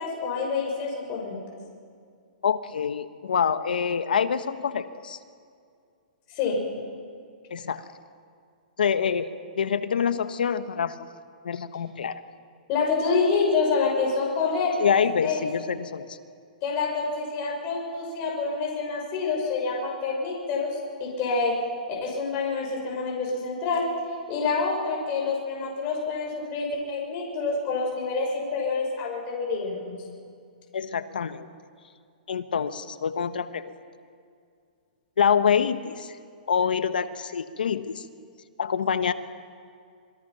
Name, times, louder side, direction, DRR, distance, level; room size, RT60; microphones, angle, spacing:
voice 1, 0.0-1.4 6.3-6.6 12.7-14.7 15.2-15.4 16.6-21.5 21.9-23.8 24.3-29.9, left 4 dB, 35° left, -1 dB, 6.1 m, -27 dB
voice 2, 2.4-5.2 7.5-7.8 8.8-11.1 11.4-12.2 14.8-16.2 30.7-31.5 32.3-33.7 35.2-36.2 36.5-38.0 38.6-39.1, left 7 dB, 85° left, 11 dB, 1.4 m, -26 dB
27.0 x 22.0 x 5.8 m, 2.3 s
hypercardioid pair, 145°, 5 cm